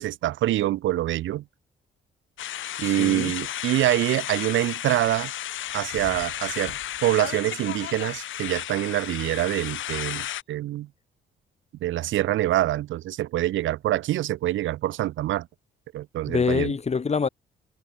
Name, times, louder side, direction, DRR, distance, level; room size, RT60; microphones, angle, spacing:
voice 1, 0.0-1.4 2.8-5.3 5.7-10.9 11.8-15.5 15.9-16.7, right 14 dB, 75° right, 0.7 m, -25 dB
sound 1, 2.4-10.4, left 12 dB, 75° left, 4.0 m, -33 dB
voice 2, 2.8-3.3 16.3-17.3, left 5 dB, 35° left, 2.0 m, -25 dB
cardioid pair, 90°, 20 cm